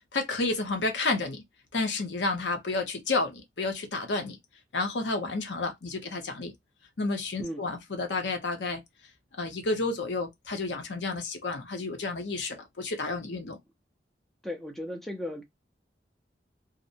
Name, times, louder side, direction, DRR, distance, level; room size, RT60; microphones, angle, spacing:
voice 1, 0.1-1.4 1.7-4.4 4.7-6.5 7.0-8.8 9.4-13.6, left 3 dB, 85° left, 0.7 m, -31 dB
voice 2, 14.4-15.4, left 1 dB, ahead, 0.4 m, -36 dB
2.6 x 2.1 x 2.7 m
head